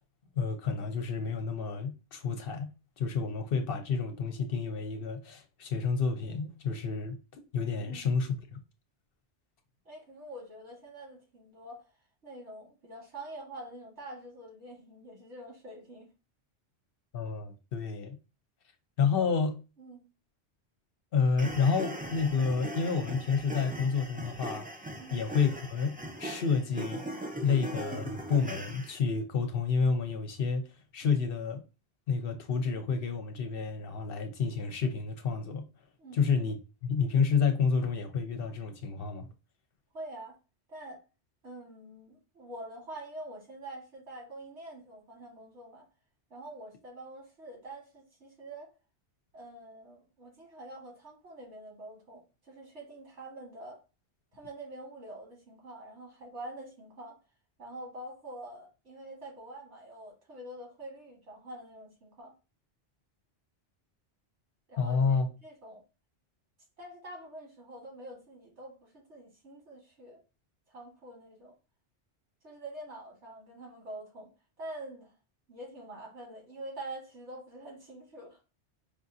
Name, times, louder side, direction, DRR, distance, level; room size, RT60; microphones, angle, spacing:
voice 1, 0.4-2.7 3.0-7.2 7.5-8.6 17.1-18.2 19.0-19.6 21.1-24.7 25.1-27.0 27.4-30.7 30.9-31.6 32.1-35.7 36.1-39.3 64.8-65.3, left 5 dB, 60° left, 0.7 m, -29 dB
voice 2, 7.8-8.1 9.9-11.8 12.2-16.1 19.2-19.3 19.8-20.0 25.0-25.2 31.0-31.2 36.0-36.4 39.9-40.4 40.7-41.0 41.4-45.9 46.3-48.7 49.3-53.8 54.3-57.2 57.6-62.3 64.7-65.8 66.8-70.2 70.7-71.5 72.4-74.3 74.6-75.1 75.5-78.4, right 1 dB, 90° right, 2.0 m, -46 dB
sound 1, 21.4-29.0, right 1 dB, 10° right, 0.4 m, -40 dB
4.8 x 2.4 x 2.6 m
omnidirectional pair, 1.1 m